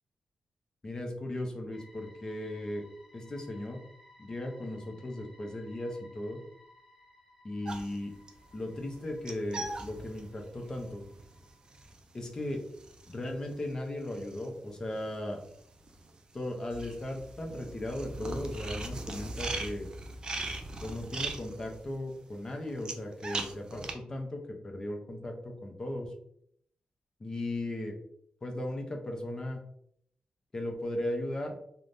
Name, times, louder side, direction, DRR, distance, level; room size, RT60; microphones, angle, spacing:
voice 1, 0.8-2.8 3.1-3.8 4.2-6.4 7.4-8.1 8.5-11.0 12.1-12.6 13.1-15.4 16.3-19.9 20.8-26.1 27.2-27.9 28.4-29.6 30.5-31.6, left 1 dB, 25° left, 2 dB, 0.5 m, -37 dB
sound 1, 1.7-11.9, left 1 dB, 10° right, 1.1 m, -60 dB
sound 2, 7.6-15.2 15.4-23.9, right 2 dB, 30° right, 0.3 m, -40 dB
3.2 x 2.1 x 2.5 m, 0.68 s
wide cardioid pair, 150°, 3 cm